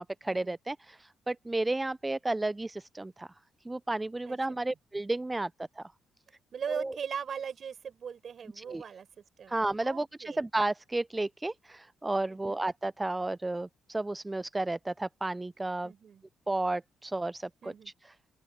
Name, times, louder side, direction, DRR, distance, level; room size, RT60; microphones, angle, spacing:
voice 1, 0.0-3.3 3.7-5.5 5.8-5.9 6.7-6.9 8.6-8.8 9.5-15.9 16.5-17.7 18.0-18.1, right 2 dB, 15° right, 0.3 m, -32 dB
voice 2, 4.2-4.6 6.5-9.1 9.4-9.5 9.8-10.4 12.3-12.6 15.8-16.2 17.6-17.9, right 7 dB, 55° right, 5.2 m, -40 dB
open air
cardioid pair, 90°, 0 cm